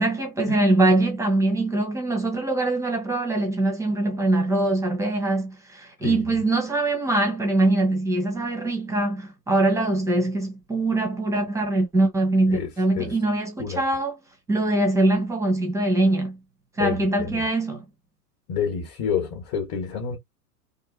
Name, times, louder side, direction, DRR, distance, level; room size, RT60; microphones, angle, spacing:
voice 1, 0.0-14.1 14.5-16.4 16.8-17.8, right 2 dB, 5° right, 0.6 m, -23 dB
voice 2, 16.8-17.5 18.5-20.2, left 7 dB, 30° left, 1.1 m, -28 dB
2.7 x 2.6 x 2.2 m
hypercardioid pair, 105°, 48 cm